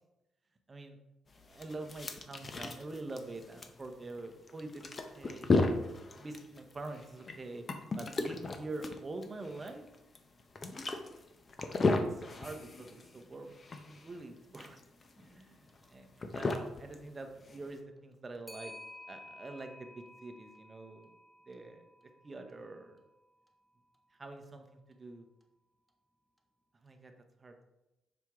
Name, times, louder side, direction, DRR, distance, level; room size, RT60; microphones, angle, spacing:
sound 1, 1.3-17.8, left 3 dB, 35° left, 0.7 m, -36 dB
voice 1, 1.4-5.5 6.2-7.6 8.0-9.9 11.9-13.6 13.9-14.8 15.2-18.7 19.1-21.1 21.5-21.8 22.2-23.0 24.2-25.3 26.8-27.1 27.4-27.5, right 2 dB, 30° right, 5 dB, 0.8 m, -45 dB
Clock, 12.3-12.4 12.8-12.9 15.7-15.9 18.5-22.7, left 2 dB, 5° left, 0.8 m, -53 dB
6.0 x 4.5 x 3.6 m, 0.94 s
cardioid pair, 90°, 0 cm